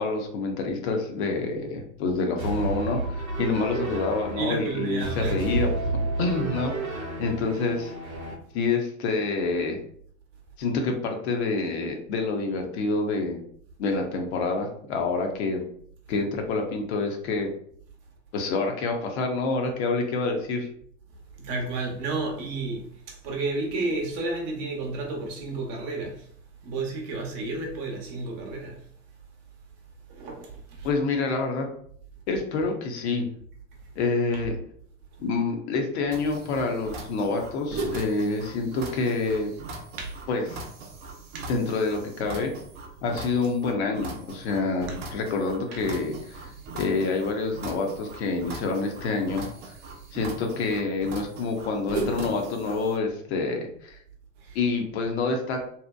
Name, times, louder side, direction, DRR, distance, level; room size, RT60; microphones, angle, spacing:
voice 1, 0.0-7.9 8.5-9.8 10.6-13.4 13.8-15.6 16.1-17.5 18.3-20.7 30.8-31.7 32.3-33.3 34.0-34.6 35.2-39.5 40.3-40.6 41.5-42.5 43.0-46.5 46.7-49.7 50.1-54.0 54.5-55.6, left 3 dB, 55° left, 0.6 m, -27 dB
sound 1, 2.4-8.3, right 2 dB, 90° right, 0.7 m, -31 dB
voice 2, 4.3-5.4 21.4-26.3 26.6-28.8 30.1-30.9 34.3-34.5 40.0-40.2 41.3-41.5 44.9-45.0 45.7-45.9 46.4-46.5 54.4-54.6, right 3 dB, 45° right, 0.8 m, -32 dB
sound 2, 36.1-53.0, right 2 dB, 30° right, 0.4 m, -39 dB
2.7 x 2.0 x 2.2 m
figure-of-eight pair, 85°, 40 cm